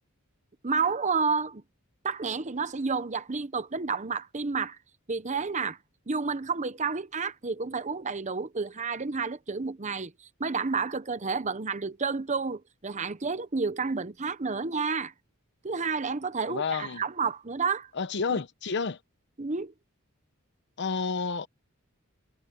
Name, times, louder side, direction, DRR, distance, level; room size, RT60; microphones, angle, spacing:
voice 1, 0.6-1.6 2.0-4.8 5.1-5.8 6.1-15.1 15.6-17.9 19.4-19.7, right 4 dB, 35° right, 0.9 m, -30 dB
voice 2, 16.5-17.0 18.0-19.0 20.8-21.5, left 5 dB, 55° left, 0.8 m, -30 dB
head